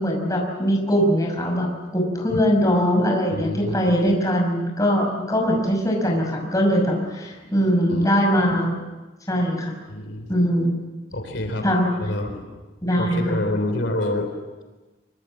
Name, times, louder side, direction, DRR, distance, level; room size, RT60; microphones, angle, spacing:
voice 1, 0.0-8.8 9.3-9.7 10.3-10.7 11.6-11.9 12.8-13.2, equal, 20° left, 0 dB, 5.8 m, -21 dB
voice 2, 3.3-4.2 7.9-8.1 8.5-8.6 9.9-10.3 11.1-11.6 11.9-12.4 12.9-14.3, left 1 dB, 70° left, 5 dB, 3.4 m, -27 dB
24.5 x 24.5 x 7.6 m, 1.2 s
head